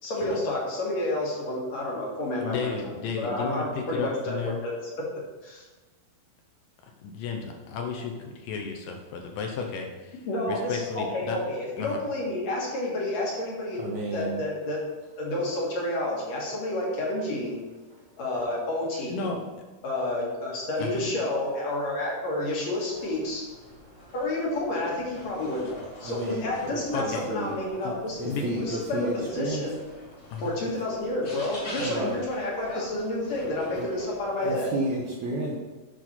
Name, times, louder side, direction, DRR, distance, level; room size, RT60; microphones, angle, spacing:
voice 1, 0.0-5.1 5.4-5.7 10.3-13.8 14.1-14.8 15.2-17.6 18.2-19.2 19.8-23.4 24.1-28.3 28.6-29.8 30.4-34.7, left 1 dB, 55° left, -3 dB, 2.4 m, -30 dB
voice 2, 2.4-4.6 7.0-10.2 10.5-11.4 11.8-12.0 19.1-19.4 20.8-21.1 26.9-27.2 27.8-28.0 28.2-28.7 30.3-30.5, left 5 dB, 75° left, 2 dB, 2.2 m, -33 dB
voice 3, 13.8-14.4 26.0-27.5 28.2-29.6 30.6-30.7 31.8-32.2 33.7-33.9 34.4-35.6, right 2 dB, 75° right, -2 dB, 1.7 m, -32 dB
sound 1, 22.9-34.5, left 1 dB, 30° left, 2.1 m, -45 dB
9.1 x 6.1 x 4.3 m, 1.3 s
omnidirectional pair, 4.3 m